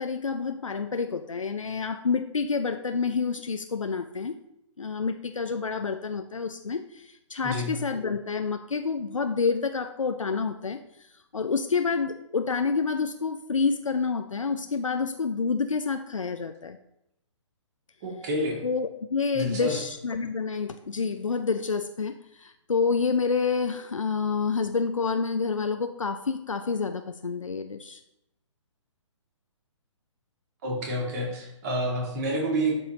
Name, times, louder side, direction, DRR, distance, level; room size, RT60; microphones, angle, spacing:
voice 1, 0.0-4.4 4.8-10.8 11.3-16.8 18.6-28.0, left 5 dB, 80° left, 7 dB, 0.5 m, -28 dB
voice 2, 7.4-7.8 18.0-18.6 19.3-19.8 30.6-32.8, right 1 dB, 30° right, -1 dB, 1.9 m, -29 dB
11.5 x 4.1 x 2.9 m, 0.82 s
figure-of-eight pair, 130°, 16 cm